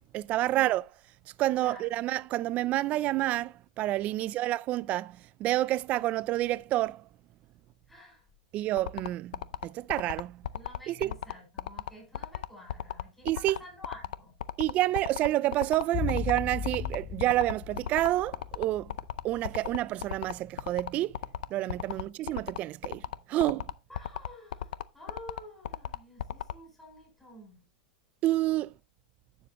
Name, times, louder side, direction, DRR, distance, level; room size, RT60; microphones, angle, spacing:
voice 1, 0.1-0.9 1.4-7.0 8.5-10.4 10.9-11.1 13.2-13.6 14.6-18.9 19.2-21.2 21.5-23.0 23.3-23.7 28.2-28.7, right 15 dB, 35° right, 0.3 m, -29 dB
voice 2, 1.6-1.9 4.1-4.5 7.9-8.2 10.5-14.3 21.9-22.0 23.9-27.6, left 1 dB, 5° left, 5.4 m, -50 dB
sound 1, 8.8-26.5, left 11 dB, 80° left, 0.5 m, -35 dB
sound 2, 15.9-20.2 20.4-20.5, left 6 dB, 35° left, 0.8 m, -37 dB
10.5 x 7.1 x 3.0 m
supercardioid pair, 140°, 4 cm